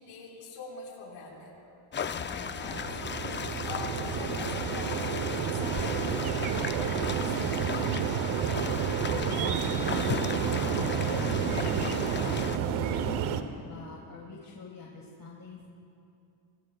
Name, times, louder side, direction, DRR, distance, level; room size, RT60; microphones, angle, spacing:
voice 1, 0.0-1.6 2.0-6.1 6.5-7.8 14.4-14.5 15.6-15.7, left 3 dB, 85° left, -4 dB, 5.0 m, -44 dB
sound 1, 1.9-12.6, left 7 dB, 25° left, 0.4 m, -36 dB
sound 2, 2.3-13.4, right 8 dB, 75° right, 1.1 m, -30 dB
voice 2, 9.1-15.7, left 4 dB, 40° left, -1 dB, 2.2 m, -45 dB
25.5 x 21.5 x 2.4 m, 2.6 s
cardioid pair, 90°, 50 cm